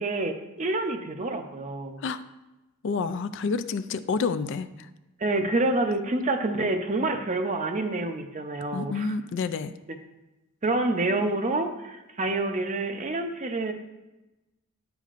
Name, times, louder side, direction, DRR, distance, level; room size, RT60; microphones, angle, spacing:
voice 1, 0.0-2.0 5.2-9.1 10.6-13.7, right 2 dB, 35° right, 6 dB, 0.6 m, -27 dB
voice 2, 2.8-4.9 8.7-9.7, left 4 dB, 55° left, 12 dB, 0.3 m, -29 dB
9.0 x 7.0 x 2.5 m, 1.0 s
head